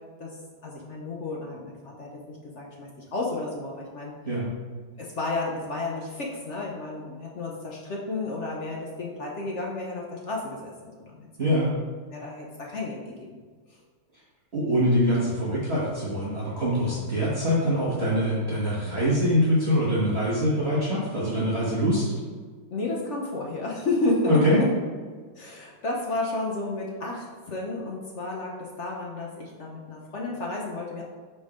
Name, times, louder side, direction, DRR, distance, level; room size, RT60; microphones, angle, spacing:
voice 1, 0.6-4.1 5.0-11.5 12.1-13.0 22.7-24.7 25.4-31.0, left 2 dB, 60° left, -2 dB, 0.7 m, -31 dB
voice 2, 11.4-11.7 14.5-22.0 24.3-24.6, equal, 35° right, -8 dB, 1.4 m, -24 dB
6.5 x 4.4 x 4.9 m, 1.5 s
omnidirectional pair, 2.3 m